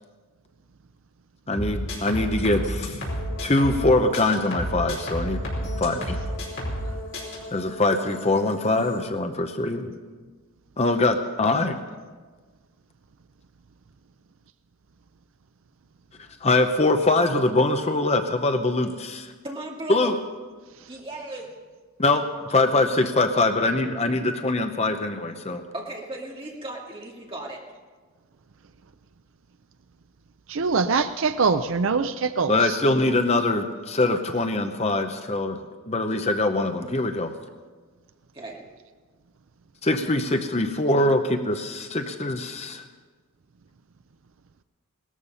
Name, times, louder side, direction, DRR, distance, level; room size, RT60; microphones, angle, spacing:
sound 1, 1.5-3.9 4.1-6.9 7.1-7.4, equal, 55° left, 5.0 m, -30 dB
voice 1, 1.5-3.0 3.4-5.4 5.8-6.2 7.5-9.9 10.8-11.8 16.4-19.3 19.9-20.1 22.0-25.6 32.5-35.6 35.9-37.3 39.8-42.8, left 2 dB, 30° left, 7 dB, 0.8 m, -23 dB
sound 2, 3.1-9.0, left 1 dB, 70° left, 2.4 m, -40 dB
voice 2, 19.4-20.1 20.9-21.5 25.7-27.6 38.3-38.6, right 2 dB, 25° right, -2 dB, 2.4 m, -36 dB
voice 3, 30.5-32.8, right 4 dB, 60° right, 11 dB, 0.5 m, -23 dB
18.5 x 13.5 x 5.6 m, 1.4 s
head